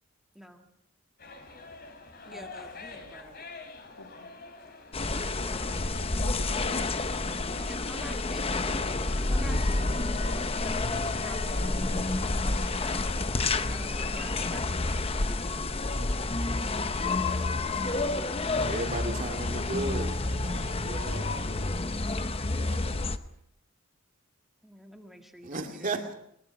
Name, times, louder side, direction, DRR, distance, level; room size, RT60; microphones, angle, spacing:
voice 1, 0.3-0.6 2.3-3.4 5.5-6.2 7.7-16.3 17.7-19.4 24.6-26.1, equal, ahead, 1.9 m, -48 dB
sound 1, 1.2-13.3, left 3 dB, 45° left, 3.3 m, -46 dB
voice 2, 4.0-4.4 5.1-5.7 6.2-7.3, left 2 dB, 80° left, 2.2 m, -47 dB
sound 2, 4.9-23.2, left 2 dB, 25° left, 0.8 m, -29 dB
voice 3, 18.6-22.8 25.4-26.1, right 2 dB, 35° right, 2.5 m, -36 dB
22.5 x 22.0 x 6.0 m
head